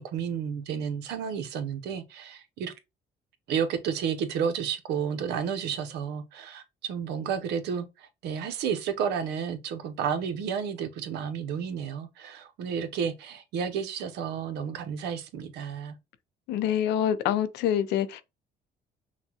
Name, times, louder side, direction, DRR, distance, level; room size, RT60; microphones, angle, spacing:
voice 1, 0.0-2.7 3.5-16.0, right 7 dB, 80° right, 0.9 m, -31 dB
voice 2, 16.5-18.2, left 10 dB, 85° left, 0.7 m, -26 dB
5.8 x 2.3 x 2.9 m
cardioid pair, 110°, 17 cm